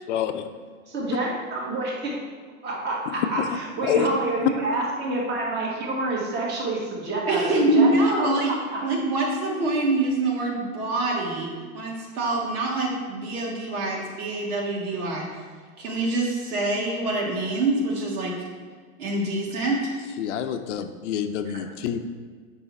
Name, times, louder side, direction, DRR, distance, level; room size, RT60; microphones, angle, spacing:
voice 1, 0.1-0.5 3.4-3.5 3.9-4.1 4.4-4.5 20.2-22.0, left 9 dB, 55° left, 8 dB, 0.6 m, -26 dB
voice 2, 0.9-2.2 2.6-7.5 7.7-8.9, right 2 dB, 25° right, -3 dB, 1.6 m, -28 dB
voice 3, 7.3-8.5 8.8-15.3 15.8-18.3 19.0-19.9 21.5-21.6, right 2 dB, 85° right, -2 dB, 2.4 m, -25 dB
8.1 x 5.6 x 4.2 m, 1.5 s
supercardioid pair, 150°, 43 cm